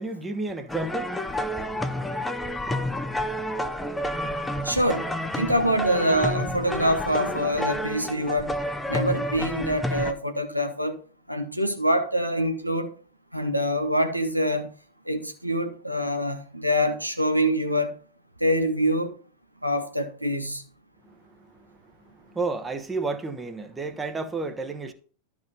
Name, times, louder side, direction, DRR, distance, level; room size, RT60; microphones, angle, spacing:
voice 1, 0.0-1.8 21.0-24.9, right 3 dB, 15° right, 1.1 m, -33 dB
sound 1, 0.7-10.1, left 1 dB, 5° left, 0.8 m, -30 dB
voice 2, 4.6-5.1 5.3-8.5 8.9-11.0 11.3-12.9 13.3-14.7 15.1-17.9 18.4-19.1 19.6-20.6, equal, 90° right, 1.2 m, -25 dB
12.0 x 4.8 x 5.3 m
figure-of-eight pair, 90°, 0 cm